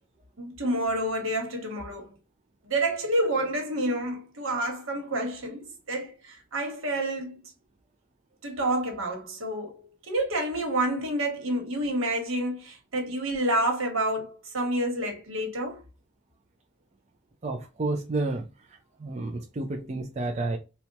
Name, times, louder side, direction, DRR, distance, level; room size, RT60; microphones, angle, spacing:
voice 1, 0.4-2.1 2.6-7.4 8.4-15.8 20.4-20.5, right 1 dB, 75° right, 1.3 m, -29 dB
voice 2, 17.4-18.4 19.0-20.6, right 2 dB, 30° right, 0.4 m, -30 dB
4.1 x 2.2 x 2.8 m
head